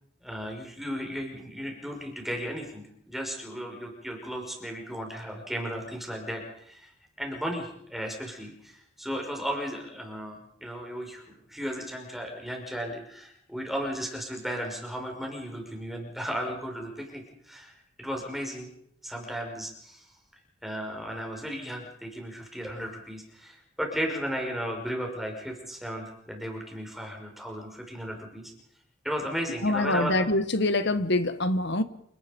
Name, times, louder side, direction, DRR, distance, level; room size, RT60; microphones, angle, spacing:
voice 1, 0.2-6.9 7.2-18.7 19.0-20.1 20.6-28.5 29.0-30.2, equal, ahead, 1 dB, 5.7 m, -35 dB
voice 2, 29.6-31.8, left 2 dB, 60° left, 12 dB, 1.4 m, -25 dB
29.0 x 18.5 x 5.3 m, 0.73 s
head